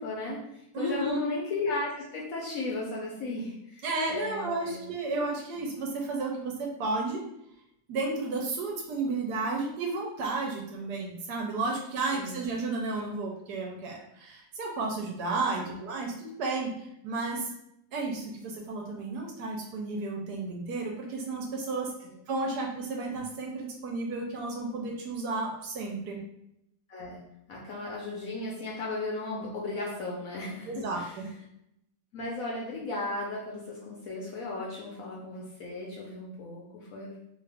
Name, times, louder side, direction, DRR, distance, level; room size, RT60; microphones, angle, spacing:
voice 1, 0.0-4.9 5.6-5.7 12.1-12.4 15.5-15.8 26.9-27.2 27.5-30.7 30.9-31.1 32.1-37.2, left 2 dB, 65° left, -4 dB, 0.9 m, -35 dB
voice 2, 0.7-1.2 3.8-7.2 7.9-17.5 17.9-21.9 22.3-26.2 30.7-31.2, right 3 dB, 70° right, 0 dB, 1.0 m, -32 dB
2.9 x 2.4 x 3.3 m, 0.80 s
omnidirectional pair, 1.9 m